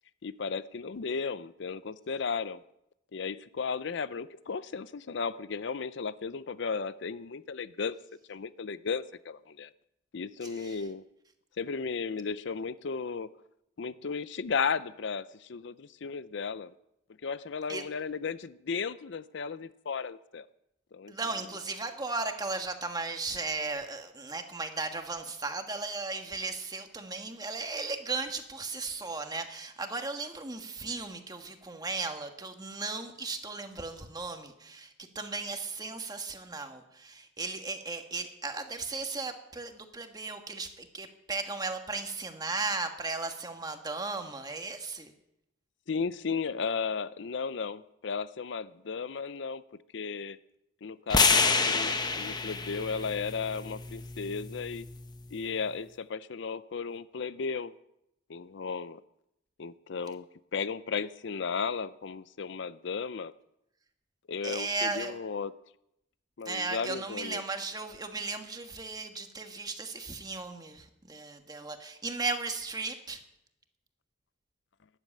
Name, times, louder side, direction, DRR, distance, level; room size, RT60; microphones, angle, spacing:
voice 1, 0.2-2.6 3.1-8.0 8.3-9.7 10.1-11.0 11.6-13.3 13.8-16.7 17.2-20.5 20.9-21.1 45.9-49.6 49.9-50.4 50.8-54.9 55.3-57.7 58.3-59.0 59.6-60.3 60.5-63.3 64.3-65.5 66.4-67.4, left 5 dB, 65° left, 15 dB, 0.5 m, -35 dB
voice 2, 10.4-10.8 17.7-17.8 21.1-45.1 64.4-65.2 66.4-73.2, right 3 dB, 20° right, 5 dB, 1.5 m, -36 dB
sound 1, 51.1-55.3, left 4 dB, 20° left, 1.0 m, -28 dB
13.0 x 11.0 x 8.5 m, 0.82 s
head